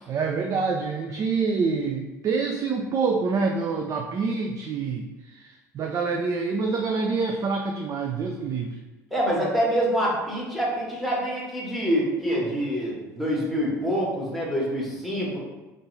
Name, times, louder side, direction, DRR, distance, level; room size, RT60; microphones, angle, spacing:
voice 1, 0.1-8.8, right 4 dB, 35° right, 3 dB, 0.4 m, -26 dB
voice 2, 9.1-15.4, equal, ahead, -5 dB, 1.5 m, -26 dB
5.2 x 2.6 x 3.2 m, 1.2 s
figure-of-eight pair, 60°, 10 cm